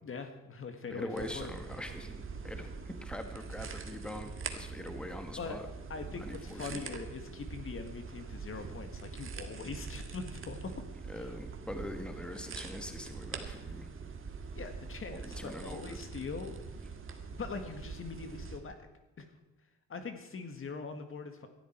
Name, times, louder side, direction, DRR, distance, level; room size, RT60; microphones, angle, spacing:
voice 1, 0.0-1.5 3.7-3.8 5.4-5.6 5.9-10.7 11.1-11.3 14.6-16.5 17.3-18.9 19.2-19.3 19.9-21.5, left 4 dB, 45° left, 7 dB, 1.8 m, -42 dB
voice 2, 0.9-5.6 6.2-6.8 11.1-13.9 15.1-16.0, left 1 dB, 5° left, 6 dB, 1.7 m, -43 dB
sound 1, 1.2-18.6, right 4 dB, 45° right, 1.8 m, -44 dB
18.0 x 12.5 x 4.6 m, 1.0 s
cardioid pair, 90°, 30 cm